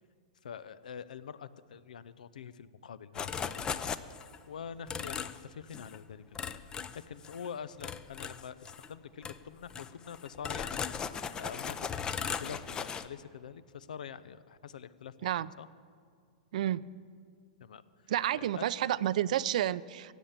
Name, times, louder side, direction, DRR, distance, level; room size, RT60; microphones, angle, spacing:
voice 1, 0.4-3.9 4.5-6.6 6.9-15.3 15.6-15.7 17.6-18.7, left 7 dB, 85° left, 16 dB, 0.7 m, -45 dB
sound 1, 3.2-4.4 4.9-5.4 5.7-6.0 6.4-7.5 7.8-8.9 9.2-9.4 9.7-13.1, left 6 dB, 20° left, 0.5 m, -37 dB
voice 2, 16.5-16.8 18.1-20.1, right 12 dB, 70° right, 18 dB, 0.5 m, -30 dB
16.0 x 8.3 x 8.8 m, 2.3 s
hypercardioid pair, 135°, 4 cm